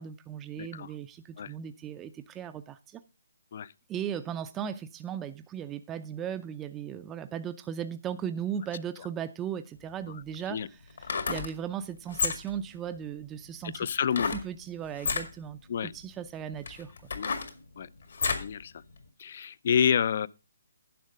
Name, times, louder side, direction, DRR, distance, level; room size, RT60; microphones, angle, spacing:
voice 1, 0.0-3.0 3.9-10.8 11.3-13.9 14.3-16.9, right 8 dB, 15° right, 0.5 m, -37 dB
voice 2, 0.6-0.9 1.4-1.5 3.5-3.7 10.5-10.7 13.7-14.3 15.7-15.9 17.1-17.4 17.8-17.9 18.3-18.7 19.2-20.3, left 8 dB, 50° left, 0.5 m, -28 dB
sound 1, 9.8-9.9 10.9-11.5 12.1-12.6 14.1-14.5 14.9-15.3 16.0-16.1 16.6-18.5 19.0-19.1, left 5 dB, 70° left, 1.9 m, -31 dB
10.5 x 6.3 x 4.9 m
hypercardioid pair, 155°, 0 cm